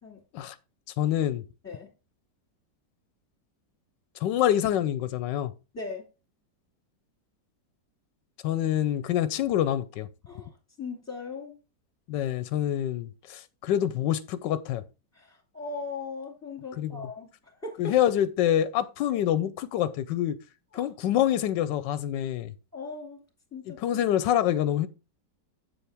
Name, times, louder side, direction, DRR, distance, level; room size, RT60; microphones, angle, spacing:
voice 1, 1.0-1.4 4.2-5.5 8.4-10.1 12.1-14.8 16.8-17.1 17.8-20.4 20.7-22.5 23.8-24.9, left 11 dB, 90° left, 1.3 m, -26 dB
voice 2, 5.7-6.1 10.3-11.6 15.1-17.3 17.6-18.0 19.1-19.2 20.7-20.9 22.7-23.2 23.5-24.0, left 4 dB, 10° left, 2.3 m, -39 dB
8.0 x 7.1 x 3.5 m
omnidirectional pair, 1.9 m